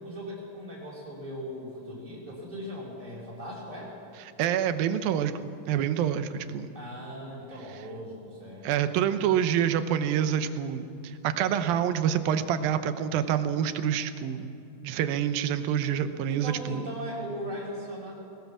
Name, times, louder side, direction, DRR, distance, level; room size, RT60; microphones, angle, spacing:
voice 1, 0.0-3.9 6.7-8.7 16.3-18.1, equal, 10° right, -5 dB, 4.8 m, -39 dB
voice 2, 4.4-6.7 8.6-14.5 14.8-16.8, right 9 dB, 90° right, 11 dB, 2.7 m, -27 dB
21.5 x 18.0 x 7.3 m, 2.6 s
omnidirectional pair, 4.1 m